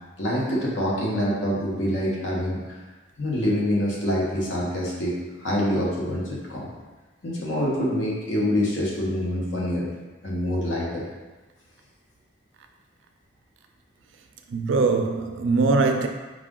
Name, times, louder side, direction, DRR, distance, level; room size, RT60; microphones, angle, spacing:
voice 1, 0.2-2.8 3.2-6.7 7.2-9.9 10.2-11.1, equal, 75° left, 1.1 m, -26 dB
voice 2, 14.5-16.1, right 3 dB, 80° right, 0.4 m, -21 dB
4.9 x 2.4 x 3.7 m
head